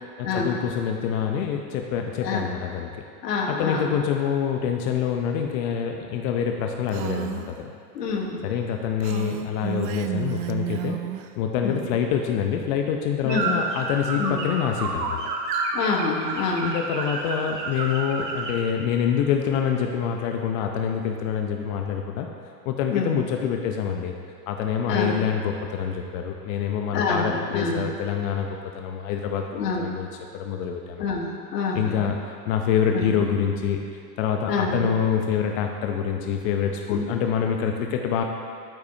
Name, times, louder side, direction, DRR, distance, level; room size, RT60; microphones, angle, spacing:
voice 1, 0.0-2.9 3.5-7.7 8.4-11.0 11.4-15.2 16.6-22.3 22.6-24.1 24.5-29.4 29.8-30.1 30.3-31.1 31.7-33.8 34.2-38.2, left 8 dB, 55° left, 3 dB, 0.7 m, -26 dB
voice 2, 3.2-3.9 7.9-8.4 11.6-11.8 13.2-13.5 14.2-14.4 15.7-16.7 22.9-23.1 24.9-25.2 26.9-27.9 29.5-29.9 31.0-32.0 32.9-33.1 34.5-34.9 36.9-37.0, left 4 dB, 90° left, 1 dB, 1.3 m, -26 dB
Female speech woman speaking, 6.9-7.5 9.0-11.3, right 12 dB, 45° right, 0.5 m, -31 dB
sound 1, 13.3-18.6, right 3 dB, 90° right, 1.2 m, -29 dB
8.8 x 8.4 x 2.7 m, 2.3 s
hypercardioid pair, 120°, 47 cm